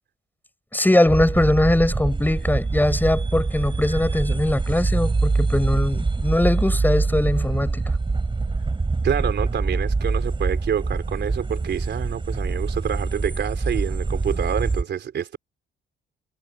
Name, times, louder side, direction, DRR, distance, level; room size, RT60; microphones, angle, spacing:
voice 1, 0.7-7.8, left 1 dB, 10° left, 5.9 m, -21 dB
sound 1, 1.1-14.8, right 3 dB, 25° right, 6.0 m, -24 dB
voice 2, 9.0-15.4, right 8 dB, 60° right, 4.5 m, -27 dB
cardioid pair, 90°, 20 cm